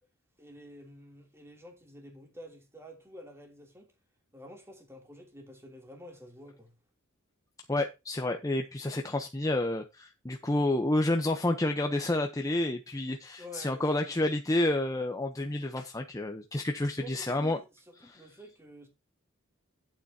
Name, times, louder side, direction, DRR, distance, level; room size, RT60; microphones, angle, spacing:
voice 1, 0.4-3.9 4.3-6.7 13.4-14.2 16.8-18.9, equal, 10° right, 2.9 m, -49 dB
voice 2, 7.7-17.6 18.0-18.2, left 1 dB, 15° left, 0.7 m, -29 dB
11.5 x 8.9 x 2.8 m
head